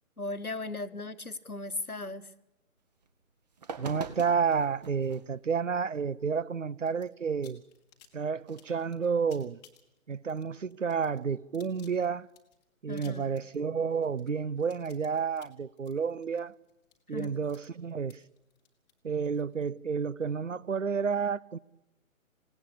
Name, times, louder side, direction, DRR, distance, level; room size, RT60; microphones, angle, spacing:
voice 1, 0.2-2.3 12.9-13.3 17.1-17.4, left 2 dB, 90° left, 1.7 m, -37 dB
sound 1, 3.1-3.2 3.5-5.2 5.9-6.0 8.4-8.9, right 4 dB, 30° right, 1.8 m, -43 dB
voice 2, 3.8-7.6 8.1-9.6 10.1-12.3 12.8-16.6 17.1-18.2 19.0-21.6, right 6 dB, 60° right, 0.8 m, -30 dB
sound 2, 6.9-7.1 7.4-19.7, left 9 dB, 10° left, 1.5 m, -60 dB
27.0 x 17.0 x 8.6 m
figure-of-eight pair, 150°, 42 cm